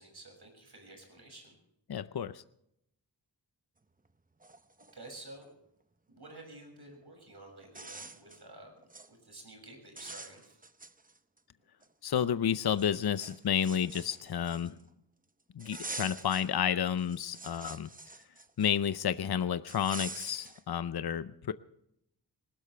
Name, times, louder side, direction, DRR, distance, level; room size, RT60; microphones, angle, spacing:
voice 1, 0.0-1.5 4.9-5.5 6.1-8.8 9.1-10.6, right 2 dB, 65° right, 2 dB, 6.6 m, -51 dB
voice 2, 1.9-2.4 12.0-14.8 15.6-17.9 18.6-21.5, left 8 dB, 60° left, 13 dB, 0.6 m, -31 dB
sound 1, 4.1-4.2 4.4-5.5 7.0-7.1 7.6-8.4 8.8-9.1 9.5-9.7 10.0-11.4 11.8-11.9 12.7-14.9 15.6-16.5 16.9-19.0 19.7-20.6, right 3 dB, 20° right, 0.8 m, -46 dB
21.5 x 19.5 x 3.3 m, 0.78 s
wide cardioid pair, 75°, 43 cm